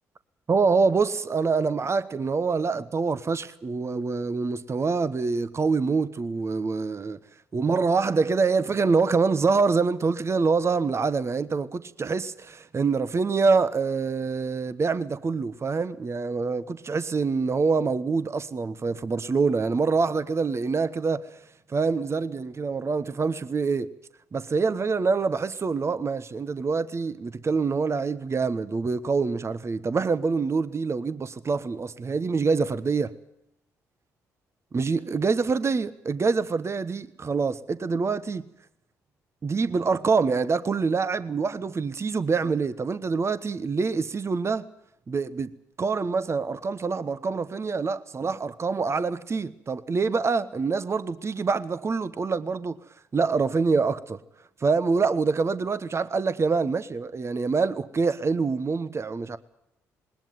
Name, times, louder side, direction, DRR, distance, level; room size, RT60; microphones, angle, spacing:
voice 1, 0.5-7.2 7.5-21.3 21.7-23.9 24.3-33.1 34.7-38.4 39.4-44.7 45.1-45.5 45.8-52.8 53.1-54.2 54.6-59.4, right 4 dB, 40° right, 1.2 m, -25 dB
20.0 x 19.0 x 9.5 m
hypercardioid pair, 50°, 7 cm